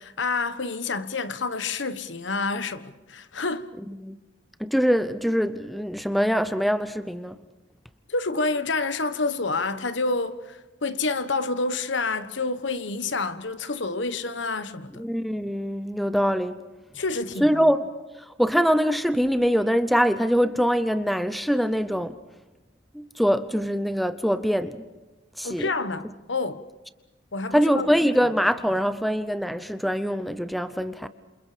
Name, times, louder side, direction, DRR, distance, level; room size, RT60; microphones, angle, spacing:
voice 1, 0.0-3.7 8.1-15.0 16.9-17.7 25.4-26.7 27.3-27.9, left 3 dB, 75° left, 1.2 m, -28 dB
voice 2, 3.9-4.2 4.6-7.4 15.0-16.6 17.4-17.9 18.3-22.2 22.9-24.8 25.4-25.7 27.5-31.1, equal, ahead, 0.7 m, -23 dB
28.5 x 28.0 x 5.1 m
head